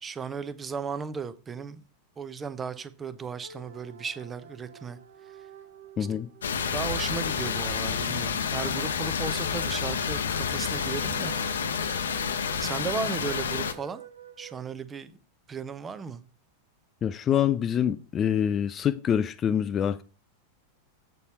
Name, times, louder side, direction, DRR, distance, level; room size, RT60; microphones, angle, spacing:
voice 1, 0.0-1.8 2.2-5.0 6.0-6.2 6.7-11.3 12.6-14.0 14.4-15.1 15.5-16.2, right 5 dB, 20° right, 0.7 m, -35 dB
sound 1, 3.4-8.3 10.3-14.6, right 9 dB, 60° right, 0.9 m, -48 dB
voice 2, 6.0-6.3 17.0-20.0, left 9 dB, 25° left, 0.4 m, -25 dB
sound 2, 6.4-13.7, left 6 dB, 65° left, 0.7 m, -29 dB
8.2 x 4.3 x 5.4 m
figure-of-eight pair, 90°, 0 cm